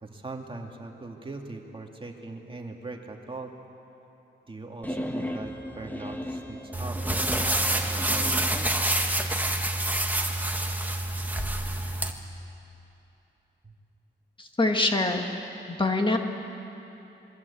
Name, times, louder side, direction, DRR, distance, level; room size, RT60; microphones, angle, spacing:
voice 1, 0.0-3.5 4.5-8.7, right 2 dB, 25° right, 2 dB, 2.3 m, -41 dB
sound 1, 4.8-8.6, equal, 10° left, 1.6 m, -36 dB
sound 2, 6.7-12.1, right 1 dB, 10° right, 1.7 m, -27 dB
voice 2, 14.4-15.2 15.7-16.2, left 2 dB, 25° left, 3 dB, 1.9 m, -24 dB
28.0 x 22.5 x 8.5 m, 2.9 s
wide cardioid pair, 140°, 19 cm